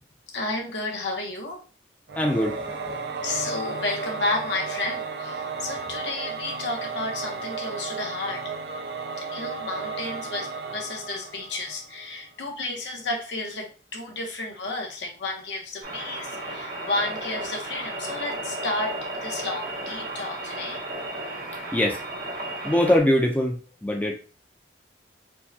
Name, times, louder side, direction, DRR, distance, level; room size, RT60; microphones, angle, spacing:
voice 1, 0.3-1.6 3.2-8.4 9.2-20.8, left 2 dB, 80° left, 0 dB, 1.0 m, -32 dB
Singing / Musical instrument, 2.1-12.1, right 4 dB, 65° right, 0.4 m, -34 dB
voice 2, 2.2-2.8 21.7-22.0 22.6-24.1, left 1 dB, 10° left, 1 dB, 0.4 m, -22 dB
sound 1, 15.8-23.0, right 2 dB, 80° right, 1.5 m, -34 dB
4.4 x 2.2 x 2.7 m, 0.36 s
head